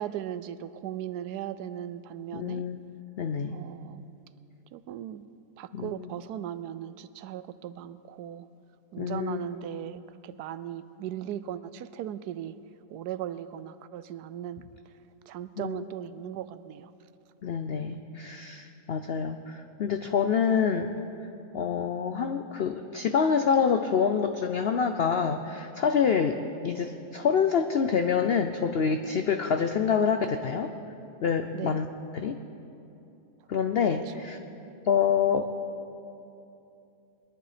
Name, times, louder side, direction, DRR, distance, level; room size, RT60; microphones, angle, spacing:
voice 1, 0.0-2.6 3.5-4.0 4.7-5.3 5.6-8.5 8.9-12.6 12.9-14.6 15.3-16.9 31.5-31.8 34.1-34.2, right 11 dB, 80° right, 14 dB, 1.1 m, -38 dB
voice 2, 2.3-2.8 3.2-3.6 5.7-6.1 9.0-9.4 15.6-15.8 17.4-20.9 21.5-30.7 31.2-31.9 32.1-32.4 33.5-34.4 34.8-35.5, left 6 dB, 75° left, 7 dB, 0.5 m, -26 dB
21.5 x 11.0 x 5.0 m, 2.8 s
omnidirectional pair, 1.7 m